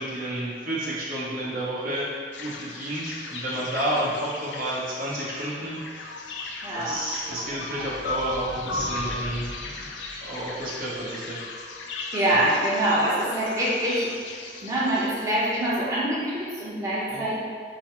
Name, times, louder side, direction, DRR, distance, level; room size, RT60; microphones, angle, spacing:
voice 1, 0.0-2.1 2.4-6.3 6.7-9.9 10.2-11.4 17.1-17.2, right 1 dB, 50° right, -9 dB, 1.1 m, -31 dB
sound 1, 2.3-15.7, left 3 dB, 90° left, 0.4 m, -37 dB
voice 2, 6.6-7.0 12.1-14.1 14.6-17.4, right 1 dB, 20° right, -9 dB, 1.0 m, -25 dB
sound 2, 6.9-10.8, left 1 dB, 30° left, 0.4 m, -42 dB
6.2 x 2.2 x 3.0 m, 2.1 s
head